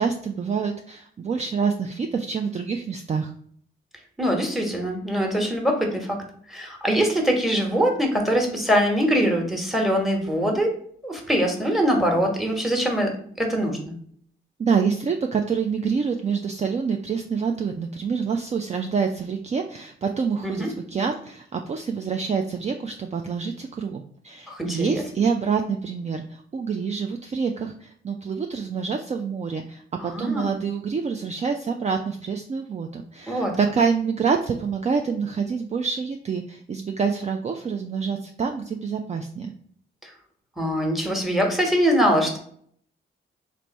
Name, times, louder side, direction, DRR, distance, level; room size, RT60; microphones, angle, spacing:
voice 1, 0.0-3.3 14.6-39.5, right 5 dB, 30° right, 4 dB, 0.4 m, -27 dB
voice 2, 4.2-6.2 6.5-13.9 20.4-20.7 24.5-25.0 30.0-30.6 33.3-33.6 40.0-40.1 40.6-42.4, equal, ahead, 2 dB, 1.1 m, -23 dB
3.2 x 2.6 x 4.1 m, 0.62 s
cardioid pair, 65°, 21 cm